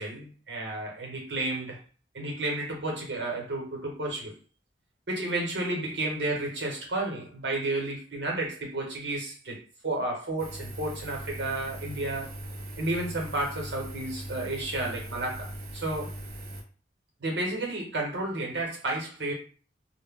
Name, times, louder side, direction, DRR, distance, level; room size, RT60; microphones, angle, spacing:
voice 1, 0.0-1.8 2.1-4.3 5.1-9.6 9.8-12.3 12.8-16.1 17.2-19.3, right 2 dB, 75° right, -1 dB, 1.0 m, -32 dB
Engine, 10.4-16.6, right 1 dB, 55° right, 0.4 m, -40 dB
2.2 x 2.1 x 3.5 m, 0.38 s
head